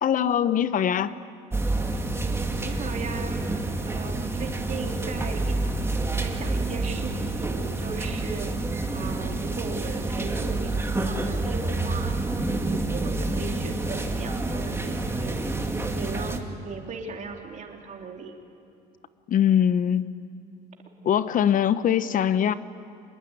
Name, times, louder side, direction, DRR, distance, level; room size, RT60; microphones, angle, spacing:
voice 1, 0.0-1.1 19.3-20.1 21.0-22.5, left 9 dB, 50° left, 14 dB, 1.0 m, -22 dB
sound 1, 1.5-16.4, right 2 dB, 15° right, 2.3 m, -28 dB
voice 2, 2.6-3.4 3.8-5.8 6.2-12.2 12.6-18.3, right 5 dB, 45° right, 2 dB, 3.5 m, -38 dB
25.5 x 21.5 x 9.6 m, 2.7 s
cardioid pair, 110°, 17 cm